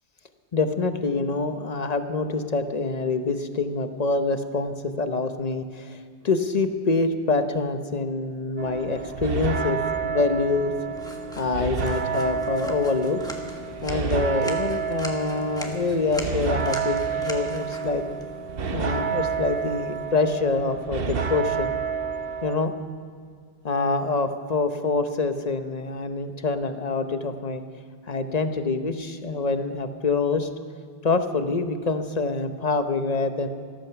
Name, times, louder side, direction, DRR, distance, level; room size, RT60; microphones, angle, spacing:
voice 1, 0.5-10.7 11.4-13.2 13.8-18.0 18.7-21.8 22.4-22.7 23.6-27.6 28.1-30.5 31.0-33.5, left 3 dB, 40° left, 8 dB, 1.0 m, -26 dB
sound 1, 8.6-22.6, right 6 dB, 65° right, 1.0 m, -29 dB
sound 2, 10.9-20.0, equal, 5° left, 1.4 m, -42 dB
14.0 x 14.0 x 5.9 m, 2.1 s
omnidirectional pair, 1.0 m